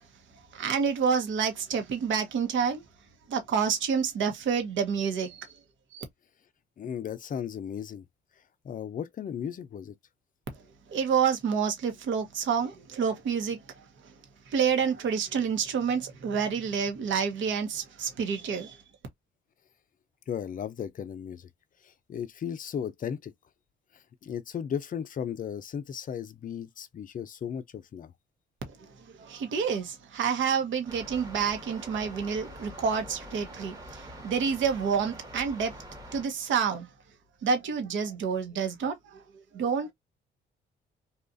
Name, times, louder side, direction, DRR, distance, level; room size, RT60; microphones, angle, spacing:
voice 1, 0.5-2.8 3.3-5.5 5.9-6.0 10.9-13.8 14.5-18.8 28.8-28.9 29.2-35.7 36.1-36.9 37.4-39.9, right 6 dB, 75° right, 1.0 m, -28 dB
voice 2, 6.8-8.0 8.6-9.9 20.3-21.5 21.8-23.3 23.9-28.1, left 8 dB, 45° left, 0.5 m, -36 dB
sound 1, 30.9-36.3, equal, 20° right, 1.1 m, -45 dB
2.8 x 2.4 x 2.5 m
cardioid pair, 90°, 20 cm